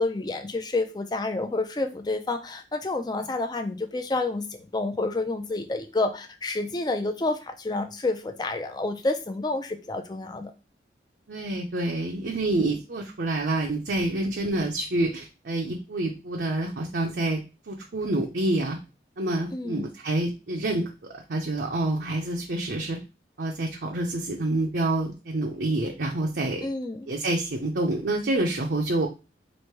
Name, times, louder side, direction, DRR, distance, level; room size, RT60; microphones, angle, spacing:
voice 1, 0.0-10.5 19.5-19.9 26.6-27.1, left 2 dB, 25° left, 6 dB, 0.5 m, -29 dB
voice 2, 11.3-17.4 17.7-18.8 19.2-20.8 21.1-23.0 23.4-26.7 27.1-29.1, right 2 dB, 65° right, 0 dB, 0.6 m, -27 dB
3.2 x 2.6 x 4.4 m, 0.29 s
head